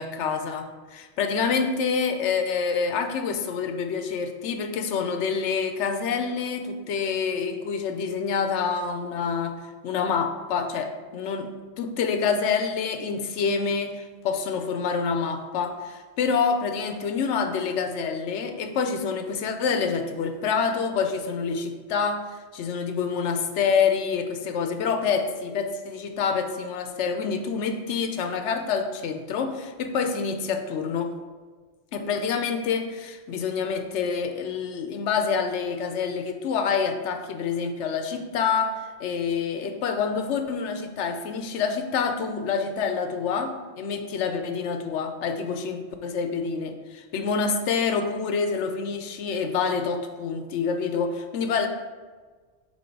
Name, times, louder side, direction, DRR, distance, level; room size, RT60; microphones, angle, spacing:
voice 1, 0.0-9.6 9.8-22.3 22.5-31.1 31.9-51.7, left 5 dB, 80° left, 7 dB, 0.9 m, -27 dB
7.1 x 2.9 x 4.5 m, 1.4 s
omnidirectional pair, 1.2 m